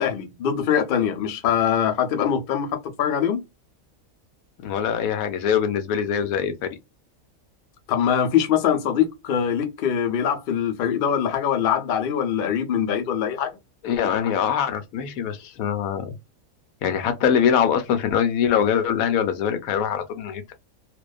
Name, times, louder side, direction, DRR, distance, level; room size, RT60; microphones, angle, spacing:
voice 1, 0.0-3.4 7.9-13.5, left 8 dB, 55° left, 0.6 m, -23 dB
voice 2, 4.6-6.7 13.8-16.2 16.8-20.5, left 8 dB, 85° left, 1.0 m, -23 dB
2.5 x 2.2 x 2.3 m
omnidirectional pair, 1.4 m